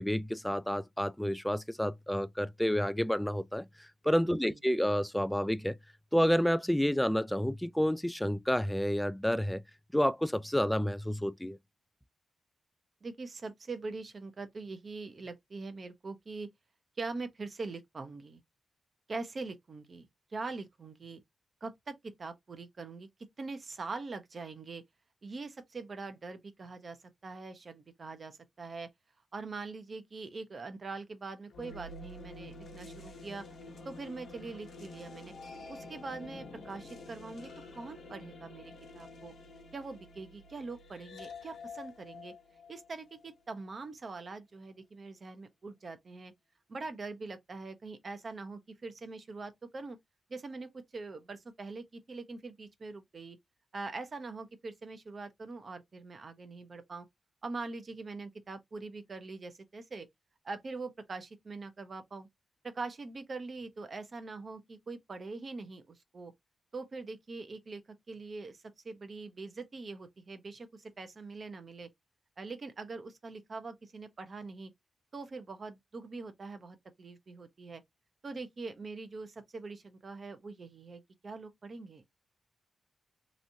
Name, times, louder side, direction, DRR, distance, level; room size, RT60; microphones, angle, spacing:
voice 1, 0.0-5.8 6.1-9.6 9.9-11.6, equal, 5° left, 0.3 m, -29 dB
voice 2, 4.3-4.6 13.0-16.5 17.0-18.4 19.1-21.2 21.6-23.1 23.4-24.8 25.2-27.0 27.2-28.9 29.3-33.4 33.8-35.3 35.7-39.3 39.7-42.3 42.7-46.3 46.7-50.0 50.3-53.4 53.7-57.1 57.4-60.1 60.4-62.3 62.6-66.3 66.7-71.9 72.4-74.7 75.1-77.8 78.2-82.0, right 3 dB, 50° right, 0.8 m, -43 dB
sound 1, 31.5-43.7, left 3 dB, 80° left, 1.0 m, -49 dB
3.1 x 2.6 x 2.7 m
cardioid pair, 55°, 0 cm